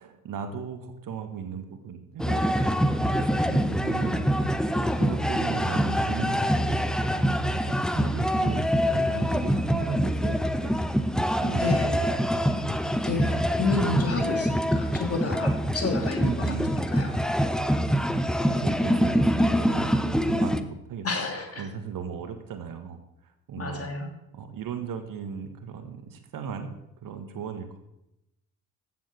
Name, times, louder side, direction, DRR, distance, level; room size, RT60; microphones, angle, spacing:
voice 1, 0.0-2.4 3.0-10.7 11.2-12.2 12.5-13.2 16.2-16.8 18.5-21.1 21.6-23.9 24.3-27.8, right 6 dB, 50° right, 8 dB, 1.5 m, -37 dB
sound 1, 2.2-20.6, equal, ahead, 0.8 m, -25 dB
voice 2, 13.0-16.3 16.9-17.5 21.0-21.6 23.6-24.1, left 3 dB, 30° left, 3 dB, 2.9 m, -30 dB
15.0 x 7.6 x 4.4 m, 0.87 s
figure-of-eight pair, 50°, 44 cm